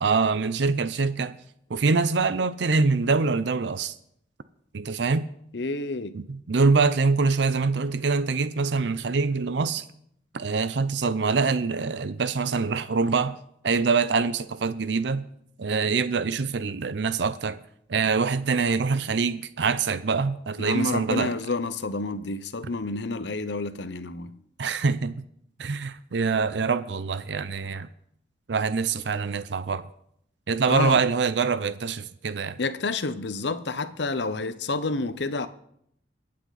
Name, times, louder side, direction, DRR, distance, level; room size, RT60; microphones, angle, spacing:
voice 1, 0.0-1.4 1.7-3.9 4.7-5.3 6.1-9.8 10.3-13.4 13.6-15.2 15.6-17.6 17.9-21.3 24.6-25.2 25.6-27.9 28.5-29.9 30.5-32.6, right 4 dB, 70° right, 0.6 m, -24 dB
voice 2, 5.5-6.1 20.6-24.3 30.7-31.0 32.6-35.5, left 3 dB, 70° left, 0.8 m, -29 dB
23.5 x 8.6 x 4.1 m
head